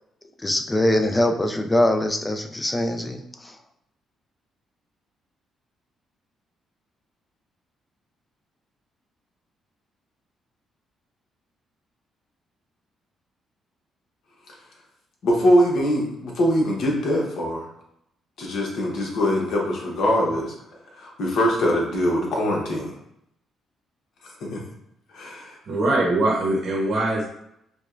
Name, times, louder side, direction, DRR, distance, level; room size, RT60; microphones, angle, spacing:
voice 1, 0.4-3.6, left 1 dB, 15° left, 5 dB, 0.4 m, -23 dB
voice 2, 15.2-17.7 18.4-20.5 21.0-22.9 24.4-24.6 25.1-25.6, equal, 70° left, -1 dB, 0.9 m, -22 dB
voice 3, 25.7-27.3, right 2 dB, 60° right, -3 dB, 0.8 m, -22 dB
5.0 x 2.2 x 2.5 m, 0.78 s
cardioid pair, 90°, 0 cm